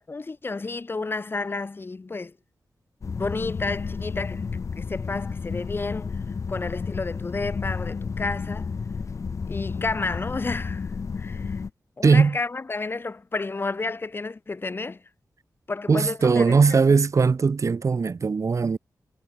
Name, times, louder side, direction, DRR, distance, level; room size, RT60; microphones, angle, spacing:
voice 1, 0.0-2.3 3.1-4.4 4.8-6.2 6.5-8.7 9.5-10.9 11.2-11.6 12.0-15.0 15.7-16.8, left 3 dB, 35° left, 3.7 m, -31 dB
sound 1, 3.0-11.7, left 5 dB, 50° left, 1.1 m, -32 dB
voice 2, 12.0-12.4 15.9-18.8, right 5 dB, 50° right, 2.9 m, -19 dB
wide cardioid pair, 135°, 7 cm